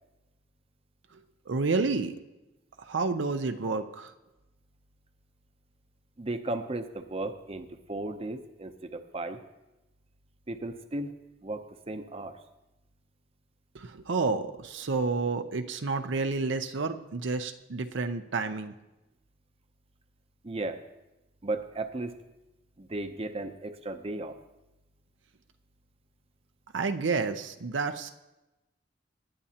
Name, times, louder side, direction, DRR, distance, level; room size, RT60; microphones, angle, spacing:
voice 1, 1.5-2.2 2.8-4.1 13.7-18.7 26.7-28.1, right 4 dB, 85° right, 8 dB, 0.6 m, -30 dB
voice 2, 6.2-9.4 10.5-11.1 11.4-12.4 20.4-20.8 21.4-22.2 22.8-24.4, right 2 dB, 30° right, 8 dB, 0.7 m, -35 dB
19.0 x 10.0 x 2.9 m, 1.0 s
head